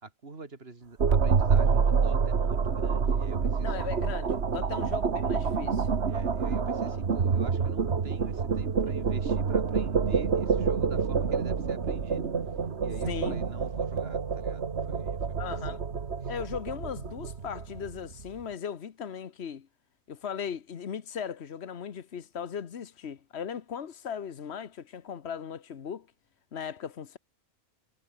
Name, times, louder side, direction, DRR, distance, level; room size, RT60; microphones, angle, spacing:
voice 1, 0.0-3.9 6.1-12.3 12.8-15.8 16.2-16.3, right 3 dB, 70° right, 2.8 m, -45 dB
sound 1, 1.0-18.2, right 5 dB, 85° right, 1.8 m, -27 dB
voice 2, 3.6-5.9 6.9-7.0 13.1-13.4 15.4-15.8 16.3-19.7 20.1-26.1 26.5-27.2, left 7 dB, 80° left, 1.4 m, -38 dB
omnidirectional pair, 1.1 m